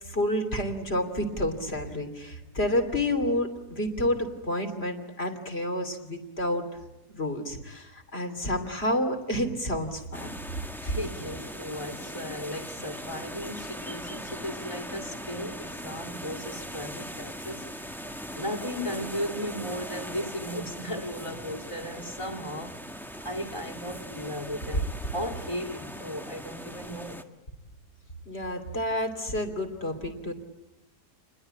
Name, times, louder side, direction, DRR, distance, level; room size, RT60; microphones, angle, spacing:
voice 1, 0.1-6.7 7.1-10.3 28.3-30.3, left 1 dB, 35° left, 3.2 m, -29 dB
sound 1, 10.1-27.2, equal, ahead, 1.3 m, -40 dB
voice 2, 10.8-18.0 18.3-22.8 23.2-27.2, equal, 20° left, 2.2 m, -36 dB
28.5 x 21.0 x 8.9 m
omnidirectional pair, 1.7 m